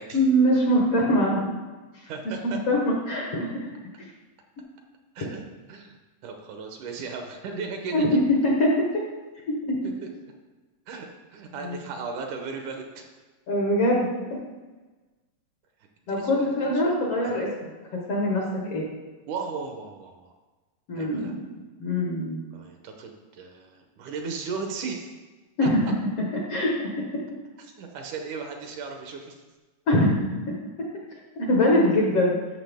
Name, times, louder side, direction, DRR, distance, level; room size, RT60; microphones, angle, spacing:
voice 1, 0.1-1.5 2.3-3.5 7.9-9.0 9.5-9.8 11.6-11.8 13.5-14.4 16.1-17.5 18.1-18.8 20.9-21.4 21.8-22.4 25.6-25.8 26.3-27.2 29.9-30.5 31.4-32.3, left 1 dB, 60° left, -2 dB, 1.7 m, -23 dB
voice 2, 2.1-2.6 5.2-5.4 5.7-6.0 6.2-8.0 9.8-10.1 10.9-13.1 16.1-16.9 17.2-17.4 19.3-20.3 20.9-21.3 22.5-25.1 25.6-25.7 27.6-29.4, right 4 dB, 70° right, 3 dB, 2.1 m, -36 dB
12.0 x 6.8 x 3.5 m, 1.3 s
omnidirectional pair, 3.9 m